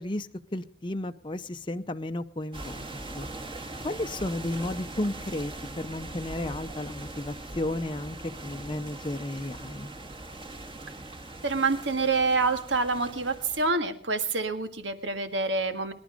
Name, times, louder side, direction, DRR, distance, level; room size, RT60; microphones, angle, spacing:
voice 1, 0.0-3.3 3.8-8.2 8.4-9.9, left 1 dB, 25° left, 7 dB, 0.7 m, -33 dB
sound 1, 2.5-13.7, right 2 dB, 30° right, 2.1 m, -41 dB
voice 2, 11.4-15.9, right 3 dB, 85° right, 9 dB, 1.8 m, -27 dB
24.0 x 11.5 x 5.1 m, 0.44 s
head